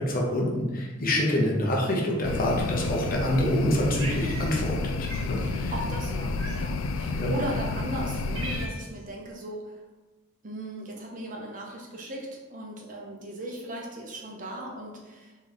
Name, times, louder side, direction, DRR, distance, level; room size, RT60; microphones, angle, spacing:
voice 1, 0.0-5.7 7.1-7.3, left 1 dB, 45° left, -1 dB, 0.8 m, -26 dB
sound 1, 2.2-8.7, left 3 dB, 70° left, 0.3 m, -30 dB
Cat, 4.0-4.8 5.1-5.3 6.4-6.9 7.6-7.7 8.0-9.0, right 2 dB, 70° right, 1.0 m, -39 dB
voice 2, 5.4-9.8 10.4-15.4, right 1 dB, 40° right, -1 dB, 0.8 m, -37 dB
3.7 x 3.1 x 4.0 m, 1.2 s
head